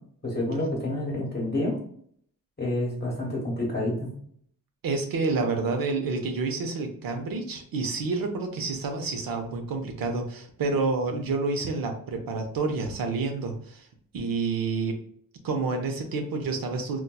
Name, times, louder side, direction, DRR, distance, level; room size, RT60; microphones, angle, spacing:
voice 1, 0.2-1.8 2.6-4.1, left 1 dB, 30° left, -4 dB, 1.0 m, -28 dB
voice 2, 4.8-13.9 14.1-15.0 15.4-17.0, right 3 dB, 75° right, 4 dB, 0.6 m, -29 dB
3.9 x 2.3 x 2.2 m, 0.62 s
wide cardioid pair, 120°, 35 cm